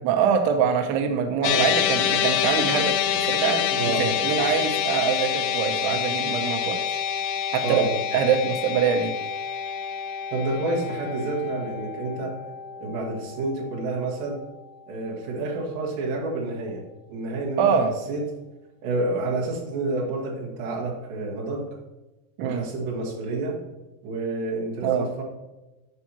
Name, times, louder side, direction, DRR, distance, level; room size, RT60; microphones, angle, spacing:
voice 1, 0.0-2.9 3.3-6.8 7.5-7.8 8.1-9.2 17.6-17.9 22.4-22.6 24.8-25.1, right 7 dB, 85° right, 6 dB, 2.4 m, -24 dB
sound 1, 1.4-13.9, left 8 dB, 85° left, 3.1 m, -27 dB
voice 2, 7.6-7.9 10.3-12.4 12.8-14.4 14.9-16.8 17.1-17.8 18.1-18.3 18.8-21.7 22.4-23.6 24.0-25.2, right 2 dB, 70° right, -3 dB, 3.8 m, -29 dB
11.5 x 5.6 x 2.9 m, 1.0 s
omnidirectional pair, 5.5 m